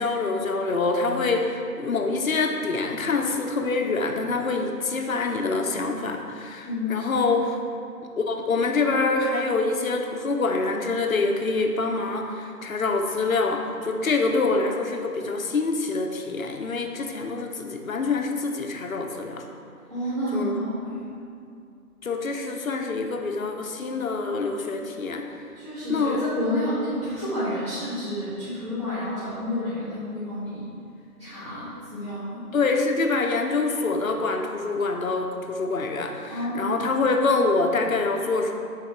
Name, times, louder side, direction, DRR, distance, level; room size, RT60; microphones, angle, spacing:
voice 1, 0.0-7.5 8.2-19.5 20.3-20.6 22.0-25.2 25.9-26.2 32.5-38.5, left 3 dB, 60° left, 3 dB, 0.7 m, -25 dB
voice 2, 6.6-7.2 19.9-21.1 25.5-30.7 31.2-32.4 36.3-36.7, left 1 dB, 20° right, -17 dB, 1.2 m, -30 dB
6.6 x 4.2 x 4.4 m, 2.4 s
figure-of-eight pair, 165°, 47 cm